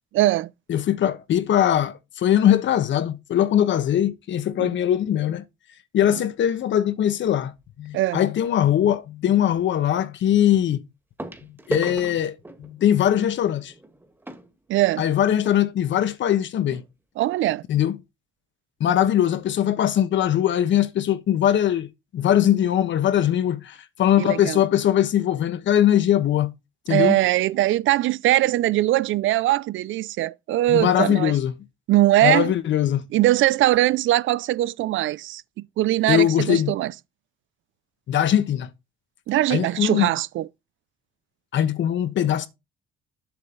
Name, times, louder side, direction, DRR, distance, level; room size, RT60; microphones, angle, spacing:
voice 1, 0.1-0.5 4.6-4.7 7.9-8.2 14.7-15.1 17.2-17.6 24.2-24.6 26.9-31.3 31.9-32.5 33.1-36.9 39.3-40.5, right 15 dB, 75° right, 0.5 m, -21 dB
voice 2, 0.7-5.4 5.9-10.9 11.7-12.3 12.6-13.7 15.0-16.8 17.7-18.0 18.8-26.5 26.9-27.2 30.7-31.5 32.2-33.1 36.1-36.7 38.1-38.7 39.5-40.1 41.5-42.5, left 11 dB, 70° left, 1.2 m, -21 dB
sound 1, 7.6-7.9 9.6-9.7 11.2-15.6 16.4-16.5 16.7-16.9 17.4-17.5, right 1 dB, 10° right, 1.6 m, -37 dB
7.7 x 6.8 x 3.9 m
cardioid pair, 90°, 20 cm